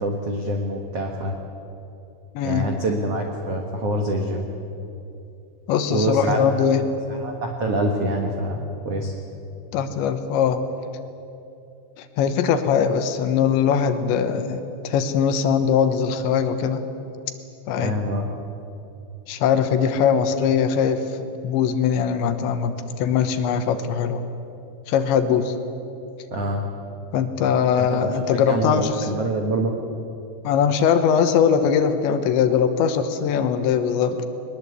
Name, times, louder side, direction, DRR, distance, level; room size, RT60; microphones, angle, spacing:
voice 1, 0.0-1.4 2.4-4.5 5.9-6.9 7.2-9.1 17.8-18.2 26.3-26.6 27.8-29.7, right 1 dB, 70° right, 2 dB, 1.4 m, -26 dB
voice 2, 2.4-2.7 5.7-6.8 9.7-10.6 12.0-16.8 17.7-17.9 19.3-21.0 21.4-24.2 24.9-25.5 27.1-29.1 30.4-34.3, left 7 dB, 75° left, 9 dB, 3.3 m, -21 dB
22.0 x 20.5 x 8.2 m, 2.8 s
omnidirectional pair, 5.4 m